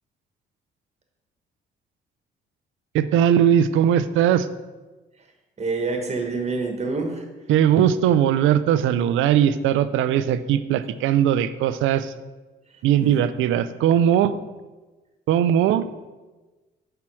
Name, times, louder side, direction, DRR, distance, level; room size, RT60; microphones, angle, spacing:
voice 1, 2.9-4.5 7.5-12.1 12.8-14.3 15.3-15.8, right 10 dB, 85° right, 13 dB, 0.4 m, -19 dB
voice 2, 5.6-7.2 13.0-13.3, right 3 dB, 35° right, 3 dB, 1.3 m, -27 dB
5.8 x 4.4 x 6.1 m, 1.2 s
cardioid pair, 90°, 20 cm